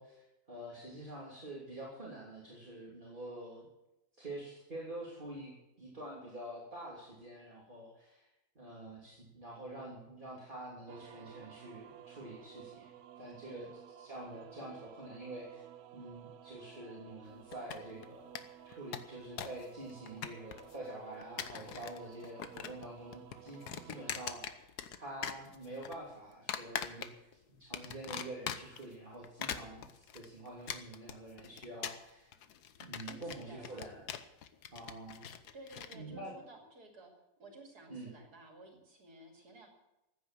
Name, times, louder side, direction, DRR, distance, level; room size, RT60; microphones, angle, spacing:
voice 1, 0.0-3.7 4.1-8.3 8.5-12.9 13.2-13.7 14.0-15.6 15.9-24.7 25.0-29.9 30.1-32.3 32.8-34.0 34.7-35.3 35.9-36.3 37.9-38.1, right 1 dB, 30° right, -5 dB, 3.1 m, -47 dB
sound 1, 10.9-24.4, right 11 dB, 75° right, 1.2 m, -54 dB
sound 2, 17.5-18.1 18.4-18.5 18.7-19.6 19.9-20.7 21.2-22.0 22.2-22.9 23.1-25.0 25.2-26.0 26.5-27.3 27.7-28.8 29.2-36.0, left 8 dB, 90° left, 1.5 m, -41 dB
voice 2, 33.1-33.9 35.5-37.1 37.4-39.7, right 2 dB, 90° right, 2 dB, 3.2 m, -54 dB
15.0 x 9.4 x 7.6 m, 0.93 s
omnidirectional pair, 1.6 m